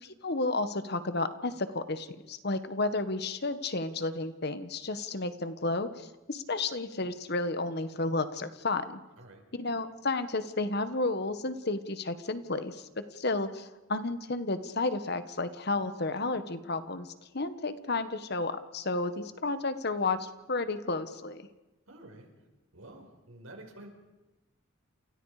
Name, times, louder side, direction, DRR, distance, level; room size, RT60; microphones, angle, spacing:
voice 1, 0.0-9.0 9.5-21.4, left 3 dB, 50° left, 11 dB, 1.4 m, -32 dB
voice 2, 21.9-22.3 22.7-23.9, right 1 dB, 90° right, 3 dB, 5.4 m, -49 dB
29.0 x 27.5 x 5.0 m, 1.1 s
head